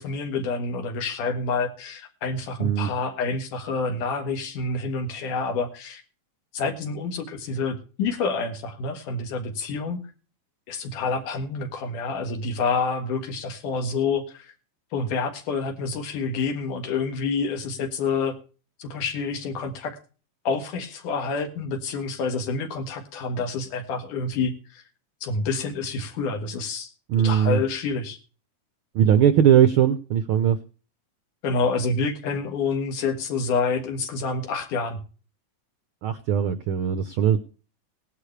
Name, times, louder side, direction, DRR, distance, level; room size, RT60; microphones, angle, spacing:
voice 1, 0.0-6.0 6.5-10.0 10.7-14.5 14.9-18.4 18.8-19.9 20.4-24.5 25.2-26.9 27.2-28.2 31.4-35.0, left 4 dB, 90° left, 6 dB, 3.3 m, -28 dB
voice 2, 27.1-27.6 29.0-30.6 36.0-37.4, right 9 dB, 85° right, 11 dB, 1.1 m, -19 dB
18.0 x 11.0 x 3.3 m, 0.37 s
omnidirectional pair, 3.5 m